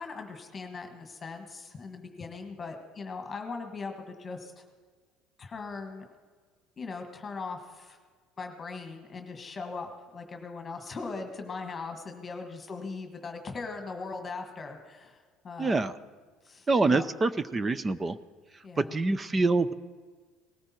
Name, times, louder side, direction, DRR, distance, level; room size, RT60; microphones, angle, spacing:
voice 1, 0.0-4.6 5.4-6.0 6.8-8.0 8.4-15.8 16.4-17.1 18.6-19.0, left 4 dB, 25° left, 4 dB, 1.6 m, -40 dB
voice 2, 15.6-15.9 16.7-18.2 18.8-19.7, right 3 dB, 20° right, 16 dB, 0.5 m, -25 dB
19.0 x 13.5 x 4.4 m, 1.5 s
cardioid pair, 130°, 0 cm